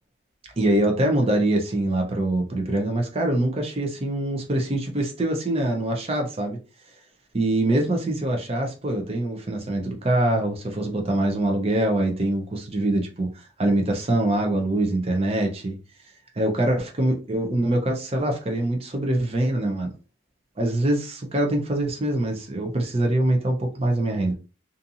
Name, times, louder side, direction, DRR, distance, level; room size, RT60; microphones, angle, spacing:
voice 1, 0.6-6.6 7.3-15.8 16.4-19.9 20.6-24.3, right 1 dB, 30° right, 0.5 m, -24 dB
2.7 x 2.5 x 2.5 m
head